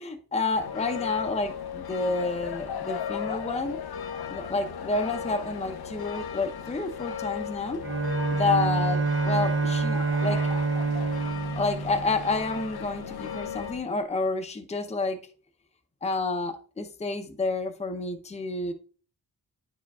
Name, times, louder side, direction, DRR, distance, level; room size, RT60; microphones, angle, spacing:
voice 1, 0.0-3.8 4.3-7.8 8.3-10.4 11.5-15.2 16.0-18.7, left 3 dB, 20° left, 0.7 m, -29 dB
sound 1, 0.5-13.8, left 8 dB, 85° left, 0.8 m, -36 dB
Bowed string instrument, 7.8-12.9, right 4 dB, 35° right, 0.4 m, -27 dB
9.5 x 4.8 x 2.3 m
cardioid pair, 80°, 37 cm